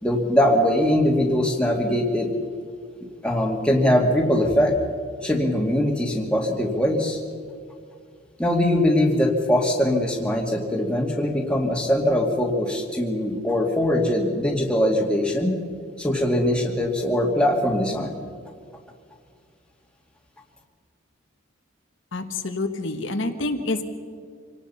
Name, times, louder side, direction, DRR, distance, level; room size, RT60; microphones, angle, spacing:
voice 1, 0.0-2.3 3.2-4.8 5.2-7.2 8.4-15.5 16.0-18.1, left 1 dB, 5° left, 0 dB, 2.3 m, -21 dB
voice 2, 22.1-23.8, left 2 dB, 60° left, 5 dB, 1.4 m, -27 dB
26.0 x 18.5 x 5.7 m, 2.1 s
head